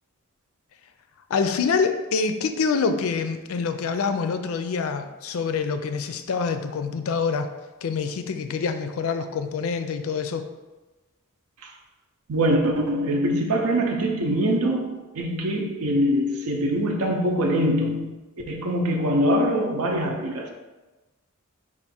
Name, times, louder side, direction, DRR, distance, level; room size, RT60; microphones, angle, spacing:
voice 1, 1.3-7.5 7.8-10.5, left 5 dB, 75° left, 0.4 m, -26 dB
voice 2, 12.3-18.1 18.5-20.5, equal, 90° right, 0.7 m, -23 dB
4.7 x 2.5 x 4.2 m
head